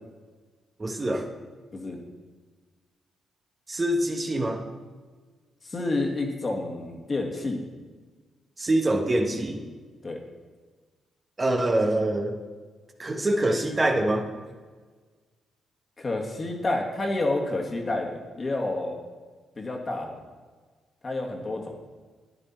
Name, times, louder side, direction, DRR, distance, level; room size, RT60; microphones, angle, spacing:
voice 1, 0.8-1.3 3.7-4.6 8.6-9.6 11.4-12.4 13.0-14.3, right 1 dB, 35° right, 3 dB, 1.3 m, -25 dB
voice 2, 5.6-7.6 10.0-10.2 16.0-19.0 19.6-20.2 21.0-21.8, left 2 dB, 40° left, 1 dB, 1.8 m, -29 dB
10.0 x 9.6 x 4.4 m, 1.4 s
hypercardioid pair, 45°, 0 cm